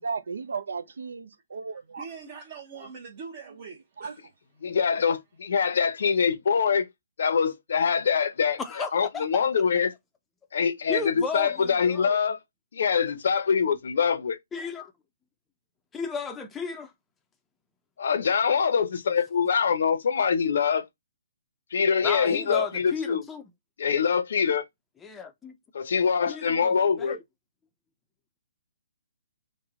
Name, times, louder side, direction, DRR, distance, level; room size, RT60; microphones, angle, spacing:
voice 1, 0.0-2.1 4.0-4.1, right 5 dB, 85° right, 0.5 m, -34 dB
voice 2, 1.9-4.2, right 5 dB, 40° right, 0.8 m, -42 dB
voice 3, 4.6-6.9 7.2-9.9 10.5-12.4 12.7-14.4 18.0-20.8 21.7-23.2 23.8-24.7 25.7-27.2, left 6 dB, 65° left, 0.6 m, -24 dB
voice 4, 8.6-9.4 10.9-12.2 14.5-14.9 15.9-16.9 22.0-23.4 25.0-25.5 26.3-27.2, left 5 dB, 10° left, 0.5 m, -34 dB
3.1 x 2.1 x 3.5 m
hypercardioid pair, 150°, 0 cm